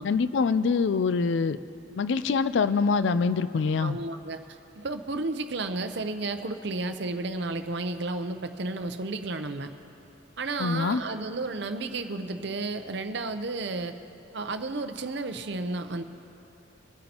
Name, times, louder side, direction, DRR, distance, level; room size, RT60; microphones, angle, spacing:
voice 1, 0.0-1.6 2.0-4.0 10.6-11.0, left 5 dB, 65° left, 13 dB, 0.4 m, -24 dB
voice 2, 3.8-4.4 4.8-9.7 10.4-14.0 14.3-16.0, right 2 dB, 55° right, 8 dB, 0.7 m, -32 dB
25.0 x 9.4 x 2.9 m, 3.0 s
head